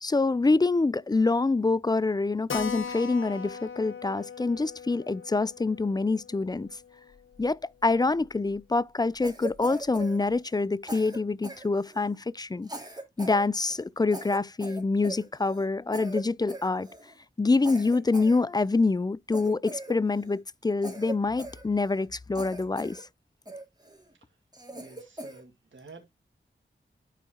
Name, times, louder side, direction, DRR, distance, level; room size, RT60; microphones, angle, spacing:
voice 1, 0.0-6.7 7.4-12.7 13.2-16.9 17.4-23.0, left 3 dB, 20° left, 0.4 m, -26 dB
Keyboard (musical), 2.5-7.6 7.8-7.9 8.2-8.3 8.6-8.7 9.2-9.6, left 6 dB, 75° left, 0.8 m, -40 dB
Cough, 9.2-10.6 10.9-12.1 12.6-13.4 13.7-13.8 14.1-15.7 15.9-16.2 16.5-17.1 17.6-18.8 19.3-20.4 20.8-22.1 22.3-23.0 23.5-24.0 24.5-25.4, right 1 dB, 20° right, 2.7 m, -40 dB
voice 2, 24.1-24.4 24.7-26.1, right 3 dB, 75° right, 2.2 m, -51 dB
11.5 x 4.9 x 2.9 m
cardioid pair, 45°, 20 cm